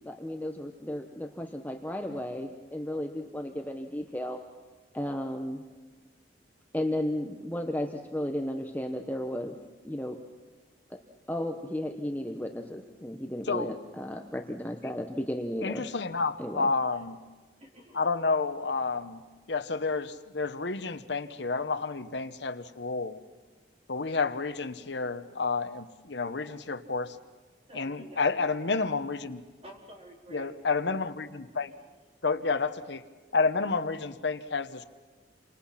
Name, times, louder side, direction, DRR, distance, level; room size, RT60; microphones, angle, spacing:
voice 1, 0.0-4.4 4.9-5.6 6.7-9.6 9.8-10.2 10.9-11.0 11.3-15.8 16.4-16.7, left 1 dB, 10° left, 4 dB, 1.0 m, -34 dB
voice 2, 15.6-17.2 17.9-19.2 19.5-23.2 23.9-27.2 27.7-29.4 30.3-31.7 32.2-33.0 33.3-34.8, left 4 dB, 70° left, 11 dB, 1.0 m, -30 dB
voice 3, 17.6-18.0 27.7-28.4 29.6-30.5 31.8-31.9, right 1 dB, 35° right, 0 dB, 4.2 m, -50 dB
29.0 x 25.5 x 5.8 m, 1.4 s
head